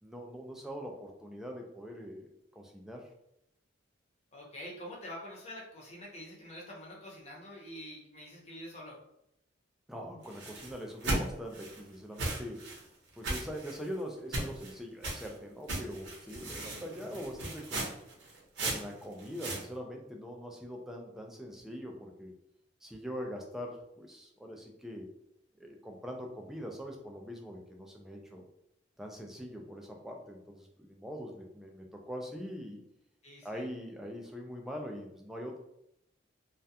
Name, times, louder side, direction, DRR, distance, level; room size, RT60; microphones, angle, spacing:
voice 1, 0.0-3.1 9.9-12.7 13.2-17.9 18.6-22.3 22.8-25.1 25.6-28.4 29.0-32.8 33.4-35.6, equal, ahead, 1 dB, 0.3 m, -43 dB
voice 2, 4.3-9.0 16.5-16.8 33.2-33.6, equal, 35° left, -3 dB, 0.7 m, -46 dB
sound 1, 10.2-11.8 12.2-12.8 13.2-13.9 14.3-14.7 15.0-15.3 15.7-19.6, right 2 dB, 70° right, 0.8 m, -36 dB
2.3 x 2.2 x 2.7 m, 0.80 s
head